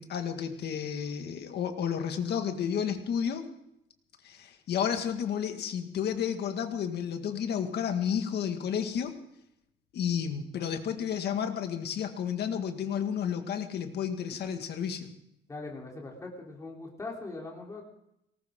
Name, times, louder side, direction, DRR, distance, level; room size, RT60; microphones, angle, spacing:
voice 1, 0.0-3.5 4.2-9.2 9.9-15.1, left 8 dB, 60° left, 6 dB, 1.9 m, -31 dB
voice 2, 15.5-17.8, left 3 dB, 15° left, -1 dB, 3.4 m, -41 dB
19.0 x 18.5 x 3.7 m, 0.81 s
cardioid pair, 165°, 19 cm